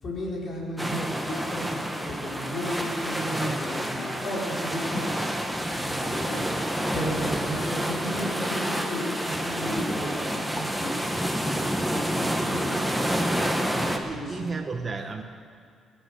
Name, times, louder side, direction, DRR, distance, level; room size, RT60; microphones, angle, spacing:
voice 1, 0.0-5.4 6.0-6.4 6.9-14.5, equal, 50° left, -4 dB, 4.5 m, -35 dB
sound 1, 0.8-14.0, equal, ahead, 1.4 m, -28 dB
sound 2, 1.0-2.7 3.2-4.4 5.1-5.4 5.7-9.2 9.4-10.3, left 1 dB, 75° left, 4.0 m, -40 dB
voice 2, 13.7-15.2, right 4 dB, 35° right, 4 dB, 1.1 m, -34 dB
21.5 x 9.3 x 6.4 m, 2.3 s
cardioid pair, 90°, 0 cm